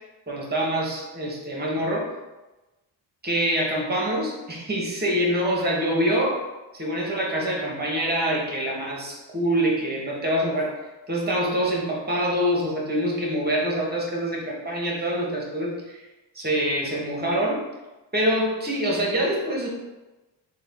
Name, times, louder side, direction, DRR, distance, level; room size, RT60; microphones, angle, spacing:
voice 1, 0.3-2.1 3.2-6.4 6.7-10.7 11.1-16.0 16.3-17.6 18.1-19.7, equal, 20° right, -3 dB, 0.9 m, -25 dB
3.6 x 2.2 x 3.4 m, 1.1 s
cardioid pair, 105°, 44 cm